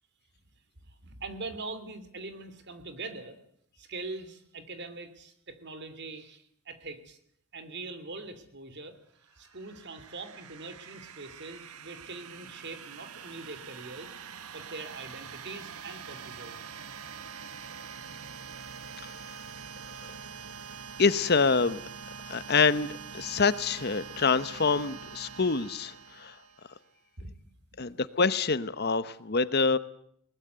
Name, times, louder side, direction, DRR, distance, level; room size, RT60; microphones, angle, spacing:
voice 1, 0.9-3.4 3.8-7.2 7.5-9.0 9.4-14.1 14.5-16.6 27.2-27.5 27.7-27.8, right 3 dB, 50° right, 11 dB, 2.8 m, -42 dB
sound 1, 9.2-26.9, right 6 dB, 80° right, 1.3 m, -45 dB
voice 2, 21.0-21.8 22.3-26.4 27.8-29.8, left 4 dB, 45° left, 15 dB, 0.9 m, -26 dB
20.5 x 20.0 x 8.1 m, 0.70 s
head